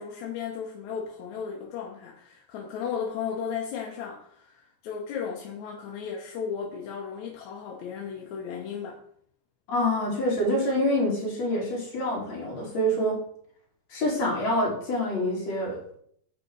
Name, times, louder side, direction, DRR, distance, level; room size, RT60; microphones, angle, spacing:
voice 1, 0.0-9.0, left 7 dB, 70° left, 0 dB, 2.1 m, -35 dB
voice 2, 9.7-13.2 13.9-16.0, equal, 50° left, -3 dB, 3.8 m, -26 dB
9.8 x 5.0 x 4.7 m, 0.64 s
omnidirectional pair, 3.9 m